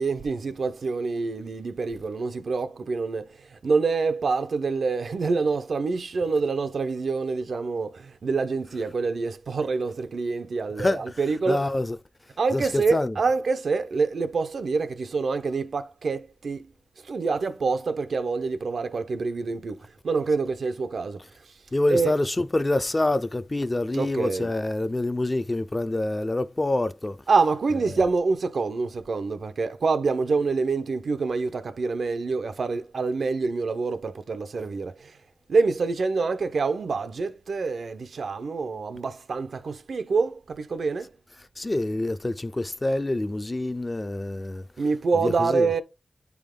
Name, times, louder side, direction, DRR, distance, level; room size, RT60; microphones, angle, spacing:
voice 1, 0.0-11.7 12.4-16.7 17.0-21.2 21.9-22.1 23.9-24.5 27.3-35.2 35.5-41.1 44.8-45.8, right 4 dB, 70° right, 0.6 m, -26 dB
voice 2, 10.7-11.2 11.5-12.0 12.5-13.2 21.7-27.2 27.9-28.0 41.6-44.7 45.1-45.7, left 2 dB, 20° left, 0.4 m, -26 dB
9.7 x 3.5 x 3.7 m
wide cardioid pair, 130°, 0 cm